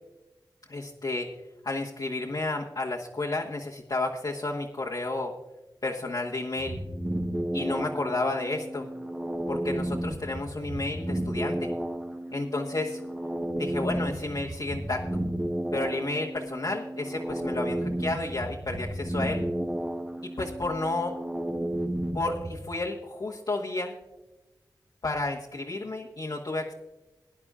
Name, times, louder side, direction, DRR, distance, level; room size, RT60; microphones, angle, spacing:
voice 1, 0.7-1.2 1.6-5.3 5.8-6.8 7.5-8.9 9.5-11.7 12.3-13.0 13.6-15.2 15.7-19.4 20.4-21.1 22.1-23.9 25.0-26.7, left 2 dB, 60° left, -2 dB, 1.3 m, -31 dB
sound 1, 6.6-22.6, right 1 dB, 10° right, 1.1 m, -33 dB
22.5 x 10.5 x 2.4 m, 1.1 s
wide cardioid pair, 85°, 8 cm